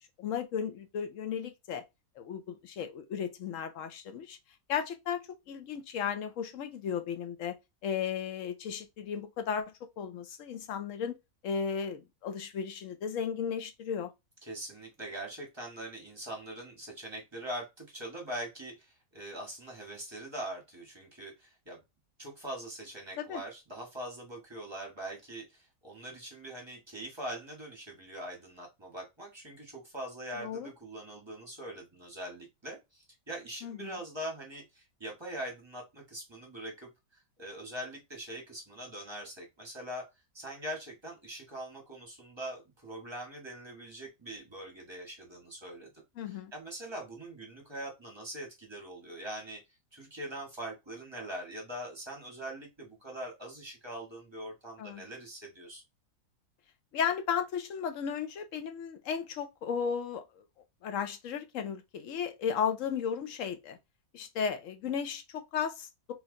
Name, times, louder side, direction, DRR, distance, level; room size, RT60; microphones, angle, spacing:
voice 1, 0.2-1.8 2.2-4.4 4.7-5.2 5.5-7.5 7.8-11.2 11.4-14.1 23.2-23.4 30.4-30.7 33.6-33.9 46.2-46.5 54.8-55.0 56.9-60.2 60.8-63.8 64.1-66.1, left 7 dB, 65° left, 1.0 m, -35 dB
voice 2, 14.4-21.8 22.2-40.1 40.3-49.6 49.9-55.8, right 1 dB, 20° right, 1.1 m, -42 dB
3.2 x 3.1 x 3.6 m
omnidirectional pair, 1.5 m